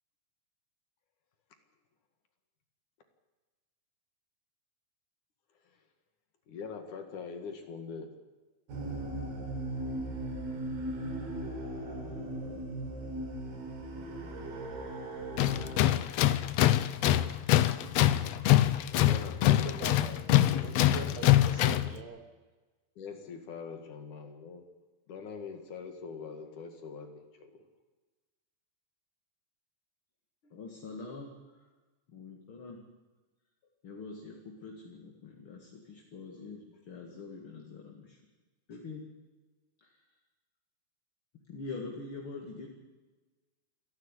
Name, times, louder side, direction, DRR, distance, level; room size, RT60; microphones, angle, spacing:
voice 1, 6.5-8.1 18.9-19.6 20.1-20.6 23.0-24.6 25.1-27.6, left 5 dB, 60° left, 6 dB, 3.3 m, -43 dB
sound 1, 8.7-15.8, right 1 dB, 85° right, 5.1 m, -38 dB
Tools, 15.4-22.0, left 13 dB, 85° left, 1.5 m, -24 dB
voice 2, 19.4-22.2, right 5 dB, 65° right, 6 dB, 4.1 m, -44 dB
voice 3, 30.4-31.3 32.1-32.8 33.8-38.2 38.7-39.0 39.8-39.9 41.5-42.7, left 3 dB, 40° left, 1 dB, 2.6 m, -44 dB
28.5 x 11.5 x 9.9 m, 1.3 s
omnidirectional pair, 4.2 m